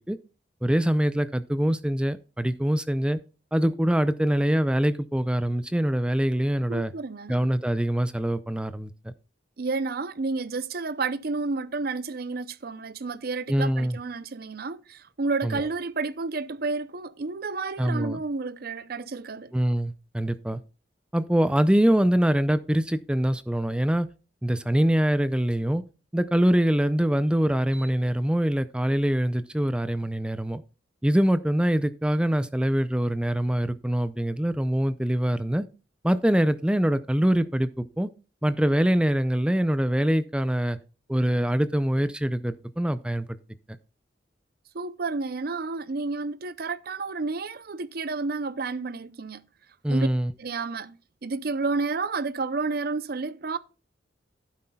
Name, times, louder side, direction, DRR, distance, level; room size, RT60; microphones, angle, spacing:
voice 1, 0.6-3.2 3.5-6.9 7.3-9.1 13.5-14.0 15.4-15.6 17.8-18.2 19.5-20.6 21.1-24.1 24.4-25.8 26.1-30.6 31.0-35.6 36.0-38.1 38.4-40.8 41.1-43.4 49.8-50.3, equal, 5° right, 0.4 m, -24 dB
voice 2, 6.7-7.4 9.6-19.5 44.7-49.4 49.9-50.1 50.4-53.6, right 3 dB, 55° right, 0.6 m, -31 dB
11.5 x 9.6 x 2.3 m
head